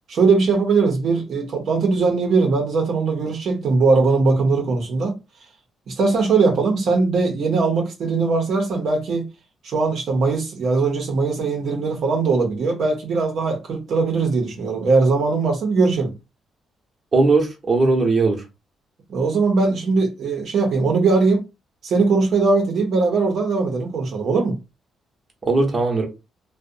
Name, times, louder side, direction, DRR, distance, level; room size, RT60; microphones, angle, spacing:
voice 1, 0.1-5.2 5.9-9.3 9.6-16.1 19.1-21.5 21.8-24.6, right 4 dB, 65° right, 0.6 m, -20 dB
voice 2, 17.1-18.4 25.5-26.1, right 3 dB, 35° right, 0.8 m, -18 dB
2.5 x 2.0 x 2.5 m
cardioid pair, 90°, 0 cm